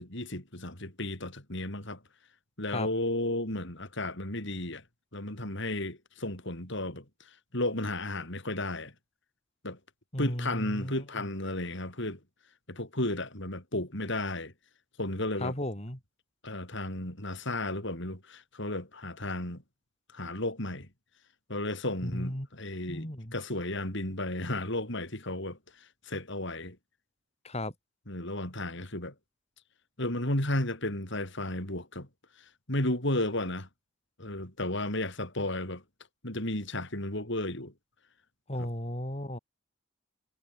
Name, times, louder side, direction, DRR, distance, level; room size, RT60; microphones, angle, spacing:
voice 1, 0.0-2.0 2.6-4.8 5.1-7.0 7.5-8.9 9.6-9.8 10.2-12.2 12.7-14.5 15.0-15.5 16.4-19.6 20.1-20.9 21.5-25.6 26.1-26.8 28.1-29.1 30.0-32.1 32.7-33.7 34.2-35.8 36.2-37.7 38.6-38.7, left 1 dB, 60° left, 7.3 m, -33 dB
voice 2, 10.1-11.2 15.4-16.0 22.0-22.5 22.9-23.3 27.4-27.7 38.5-39.4, left 1 dB, 30° left, 6.5 m, -35 dB
head